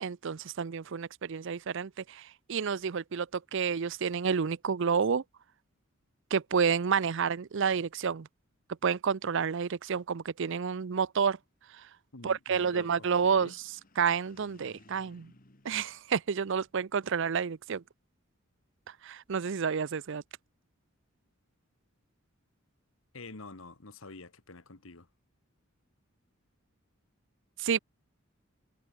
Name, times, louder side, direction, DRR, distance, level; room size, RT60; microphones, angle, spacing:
voice 1, 0.0-5.2 6.3-8.3 8.8-11.4 12.2-13.5 14.0-15.3 15.6-17.8 19.0-20.2 27.6-27.8, right 6 dB, 60° right, 0.5 m, -29 dB
voice 2, 12.1-13.6 23.1-25.1, left 3 dB, 75° left, 1.7 m, -48 dB
sound 1, 13.3-16.9, left 1 dB, 40° left, 2.8 m, -61 dB
head